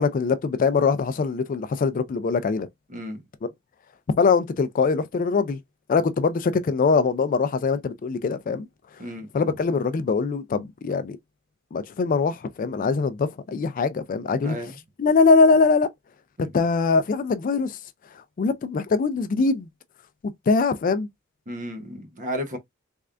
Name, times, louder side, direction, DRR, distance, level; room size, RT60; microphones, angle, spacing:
voice 1, 0.0-2.7 4.2-5.6 5.9-8.7 9.3-11.2 11.7-14.6 15.0-15.9 16.4-17.8 18.4-19.7 20.5-21.1, left 4 dB, 40° left, 0.3 m, -22 dB
voice 2, 2.9-3.2 9.0-9.4 14.4-14.7 16.4-16.5 21.5-22.6, equal, 40° right, 0.9 m, -33 dB
3.6 x 3.2 x 2.4 m
head